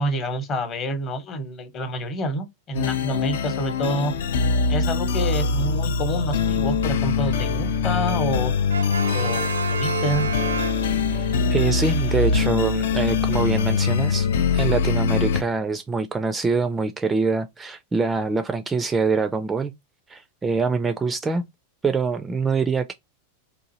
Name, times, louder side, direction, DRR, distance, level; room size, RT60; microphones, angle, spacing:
voice 1, 0.0-4.1 4.7-8.5 9.1-10.3, equal, 30° left, 0.9 m, -28 dB
sound 1, 2.7-15.4, left 5 dB, 60° left, 0.4 m, -23 dB
Brass instrument, 8.7-11.4, right 6 dB, 75° right, 0.5 m, -29 dB
voice 2, 11.5-14.3 14.5-19.7 20.1-21.4 21.8-22.9, right 4 dB, 15° right, 0.4 m, -24 dB
3.7 x 2.5 x 2.7 m
figure-of-eight pair, 90°, 0 cm